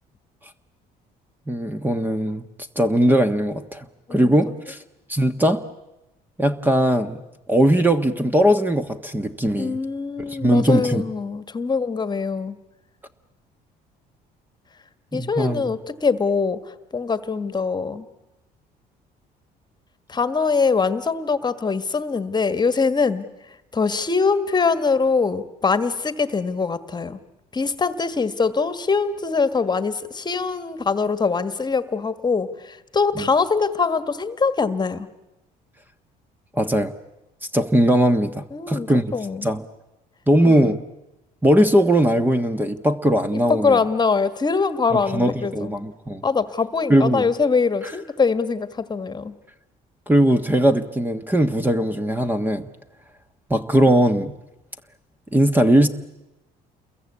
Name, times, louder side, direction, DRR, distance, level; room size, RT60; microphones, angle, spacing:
voice 1, 1.5-2.4 2.8-4.8 5.1-5.6 6.4-7.2 7.5-9.8 10.3-11.0 15.1-15.7 33.2-33.3 36.5-36.9 37.5-39.1 39.4-39.6 40.3-40.8 41.4-43.8 44.9-46.2 46.9-47.3 50.1-52.7 53.5-54.3 55.3-55.9, right 1 dB, 10° right, 1.4 m, -19 dB
voice 2, 9.6-12.6 15.1-16.6 16.9-18.1 20.1-23.3 23.7-27.2 27.5-35.1 38.5-39.5 40.4-40.7 43.3-45.7 46.2-49.3, left 4 dB, 25° left, 1.6 m, -23 dB
29.0 x 22.0 x 8.5 m
cardioid pair, 110°, 17 cm